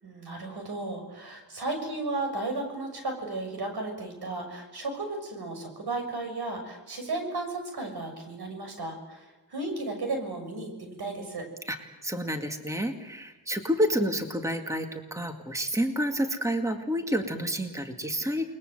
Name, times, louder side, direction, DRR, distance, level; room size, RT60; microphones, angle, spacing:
voice 1, 0.0-11.5, right 2 dB, 80° right, 4 dB, 6.7 m, -34 dB
voice 2, 12.0-18.5, equal, 10° right, 5 dB, 2.1 m, -29 dB
29.0 x 21.5 x 7.8 m, 1.1 s
wide cardioid pair, 105°, 39 cm